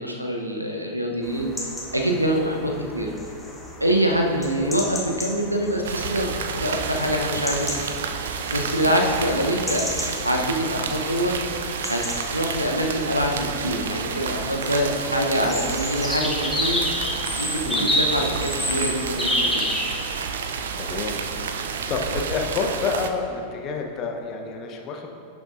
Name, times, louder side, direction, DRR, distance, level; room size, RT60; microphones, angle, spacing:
voice 1, 0.0-1.7 1.9-3.1 3.8-7.8 8.5-9.8 10.2-11.3 11.9-12.0 12.3-16.8 17.4-19.6, equal, 85° right, 1 dB, 0.8 m, -25 dB
sound 1, 1.2-20.4, left 1 dB, 5° left, 1.3 m, -31 dB
sound 2, 5.8-23.1, right 6 dB, 60° right, 0.5 m, -30 dB
voice 2, 8.8-9.2 17.6-17.9 20.8-21.2 21.9-25.1, left 4 dB, 35° left, 2 dB, 0.8 m, -29 dB
11.5 x 7.1 x 2.5 m, 2.6 s
figure-of-eight pair, 90°, 0 cm